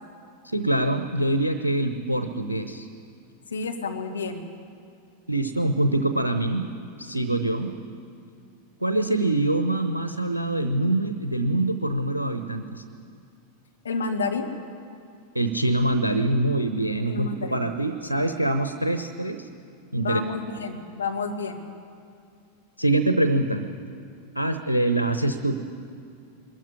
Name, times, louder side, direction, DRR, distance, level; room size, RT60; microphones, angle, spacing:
voice 1, 0.4-2.9 5.3-6.7 7.0-7.8 8.8-12.8 15.3-19.5 19.9-20.2 22.8-23.7 24.3-25.6, right 2 dB, 85° right, 10 dB, 0.8 m, -24 dB
voice 2, 3.5-4.4 13.8-14.5 17.1-17.6 20.0-21.6, left 4 dB, 70° left, 3 dB, 1.7 m, -30 dB
22.0 x 13.5 x 9.8 m, 2.4 s
figure-of-eight pair, 90°, 0 cm